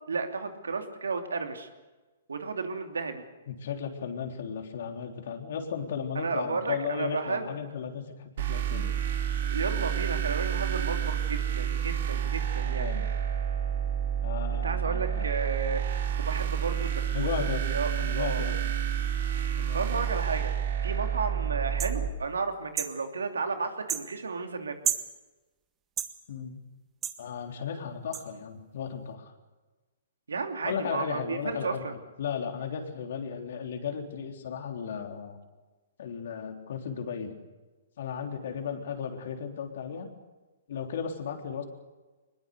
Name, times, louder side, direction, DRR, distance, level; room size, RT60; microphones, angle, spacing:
voice 1, 0.0-1.7 2.3-3.2 6.1-7.6 9.5-12.9 14.6-18.4 19.7-20.5 20.8-24.8 30.3-31.9, right 4 dB, 80° right, 5 dB, 2.8 m, -33 dB
voice 2, 3.5-8.9 12.6-13.1 14.2-15.3 17.1-17.6 18.0-18.6 19.6-20.1 26.3-26.6 27.2-29.3 30.6-31.8 32.2-35.4 36.0-37.4 38.0-40.1 40.7-41.6, left 7 dB, 60° left, 4 dB, 3.6 m, -35 dB
sound 1, 8.4-22.1, right 8 dB, 60° right, 3.5 m, -29 dB
sound 2, 21.8-22.0 22.8-22.9 23.9-24.1 24.8-25.1 26.0-26.1 27.0-27.2 28.1-28.2, right 9 dB, 20° right, 1.7 m, -30 dB
23.0 x 21.0 x 6.7 m, 1.2 s
hypercardioid pair, 125°, 0 cm